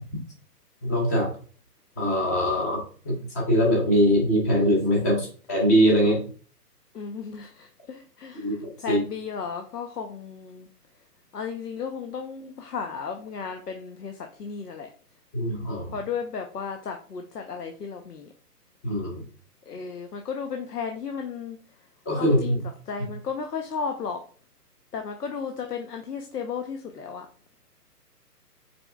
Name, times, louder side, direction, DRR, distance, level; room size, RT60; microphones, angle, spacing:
voice 1, 0.8-1.3 2.0-6.2 8.4-9.0 15.3-15.9 18.8-19.2 22.1-22.6, equal, 10° left, 0.7 m, -22 dB
voice 2, 6.9-10.7 11.3-14.9 15.9-18.3 19.7-21.6 22.2-22.6 22.9-24.2 24.9-27.3, left 6 dB, 75° left, 0.8 m, -34 dB
5.3 x 4.3 x 2.3 m
figure-of-eight pair, 140°, 48 cm